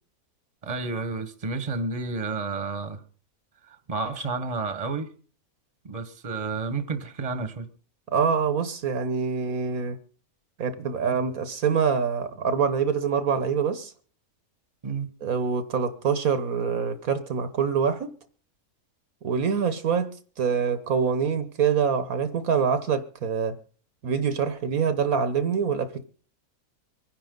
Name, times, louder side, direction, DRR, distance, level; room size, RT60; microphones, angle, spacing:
voice 1, 0.6-3.0 3.7-5.1 5.8-7.7 14.8-15.1, right 4 dB, 25° right, 1.4 m, -31 dB
voice 2, 8.1-10.0 10.6-13.9 15.2-18.1 19.2-23.6 24.0-26.0, right 6 dB, 70° right, 1.5 m, -25 dB
25.0 x 10.5 x 3.9 m
omnidirectional pair, 1.6 m